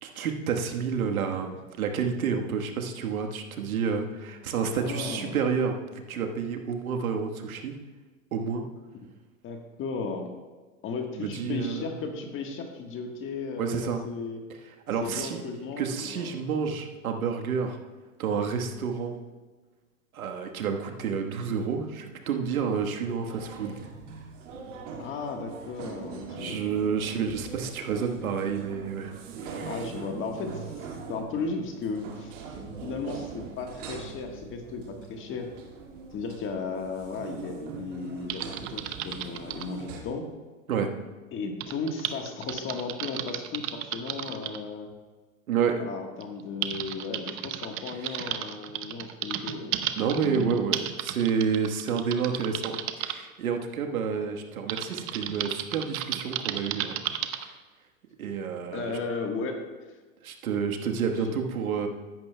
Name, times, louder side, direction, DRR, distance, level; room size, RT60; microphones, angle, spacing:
voice 1, 0.0-7.8 8.3-8.6 11.2-11.9 13.6-14.0 14.9-15.4 15.8-17.8 18.2-19.1 20.1-23.8 26.4-29.1 29.4-29.8 40.7-40.9 45.5-45.9 48.0-48.3 50.0-57.0 57.4-57.5 58.2-59.0 60.2-61.9, right 6 dB, 85° right, 4 dB, 1.4 m, -29 dB
voice 2, 4.7-5.4 9.4-10.3 10.8-14.4 15.0-16.3 25.0-26.6 29.6-32.3 32.8-35.5 36.1-40.2 41.3-44.9 45.8-49.8 50.1-50.5 58.7-59.6 61.2-61.4, left 4 dB, 30° left, 3 dB, 1.4 m, -35 dB
sound 1, 23.3-40.0, right 5 dB, 60° right, 2.1 m, -42 dB
Typing, 38.3-39.7 41.6-44.6 45.6-45.7 46.2-53.1 54.7-57.5, right 11 dB, 30° right, 0.7 m, -34 dB
15.0 x 11.0 x 2.2 m, 1.3 s
hypercardioid pair, 120°, 41 cm